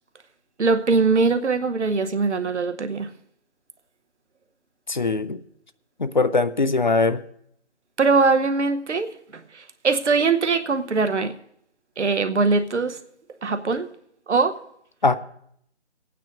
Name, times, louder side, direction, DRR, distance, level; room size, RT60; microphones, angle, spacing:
voice 1, 0.6-3.1 8.0-9.1 9.5-11.3 12.0-13.0 13.4-13.9 14.3-14.5, right 4 dB, 85° right, 0.9 m, -21 dB
voice 2, 4.9-5.4 6.0-7.2 15.0-15.2, left 3 dB, 45° left, 0.4 m, -21 dB
26.0 x 9.1 x 2.5 m
figure-of-eight pair, 170°, 34 cm